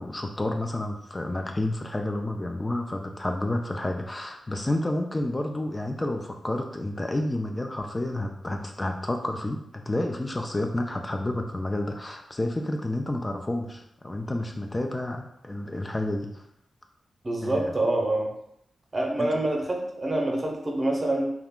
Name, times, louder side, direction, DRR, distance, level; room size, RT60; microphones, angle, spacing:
voice 1, 0.0-16.5 17.4-17.8 19.2-19.4, left 1 dB, 25° left, 3 dB, 0.3 m, -30 dB
voice 2, 17.2-18.3 18.9-21.3, right 1 dB, 35° right, 0 dB, 0.7 m, -26 dB
2.3 x 2.3 x 3.5 m, 0.74 s
cardioid pair, 50°, 0 cm